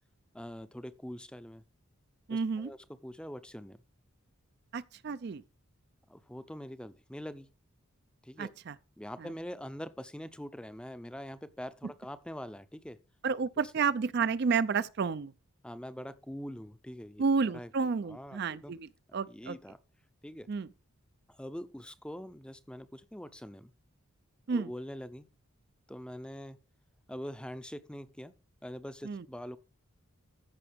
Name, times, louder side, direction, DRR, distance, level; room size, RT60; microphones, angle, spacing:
voice 1, 0.3-1.6 2.3-2.8 3.0-3.8 6.1-7.5 8.2-8.5 9.0-13.0 15.6-17.2 17.5-17.7 18.1-18.8 19.3-19.8 20.2-20.5 21.3-23.7 24.5-25.3 25.9-26.6 27.1-28.3 28.6-29.6, equal, 5° left, 0.5 m, -43 dB
voice 2, 2.3-2.7 4.7-5.4 8.4-8.8 9.2-9.3 13.2-15.3 17.2-19.6 20.5-20.7 24.5-24.7 29.0-29.3, right 5 dB, 50° right, 0.4 m, -31 dB
14.0 x 6.0 x 3.5 m
head